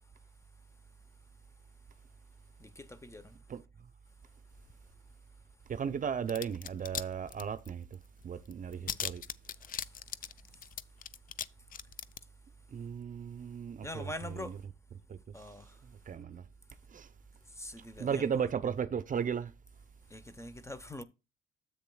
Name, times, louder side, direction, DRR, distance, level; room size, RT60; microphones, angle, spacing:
voice 1, 2.6-3.4 8.7-9.0 9.6-10.7 13.8-14.6 15.3-15.8 17.5-18.5 20.1-21.0, left 1 dB, 15° left, 0.8 m, -45 dB
voice 2, 5.7-8.0 8.2-9.2 12.7-14.1 15.1-15.2 16.1-16.4 16.9-17.1 18.0-19.5, right 7 dB, 40° right, 0.6 m, -35 dB
sound 1, 6.3-7.0 7.3-8.0 8.2-8.3 8.5-11.5 11.7-12.2, left 9 dB, 45° left, 0.5 m, -38 dB
10.0 x 7.8 x 2.3 m
cardioid pair, 90°, 20 cm